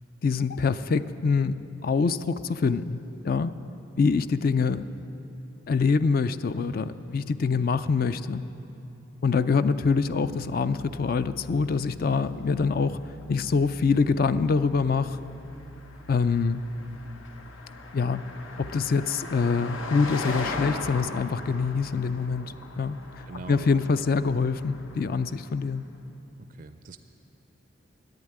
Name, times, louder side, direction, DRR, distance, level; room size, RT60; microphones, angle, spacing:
voice 1, 0.2-3.0 3.2-3.6 3.9-4.9 5.7-8.4 9.2-13.0 13.3-15.2 16.1-16.6 17.9-18.2 18.6-25.9, left 4 dB, 45° left, 13 dB, 0.3 m, -25 dB
Car passing by, 10.1-25.8, left 3 dB, 90° left, 1.0 m, -41 dB
voice 2, 10.1-10.5 23.3-23.9 26.5-27.0, right 3 dB, 45° right, 9 dB, 0.4 m, -42 dB
11.0 x 8.8 x 9.8 m, 2.9 s
head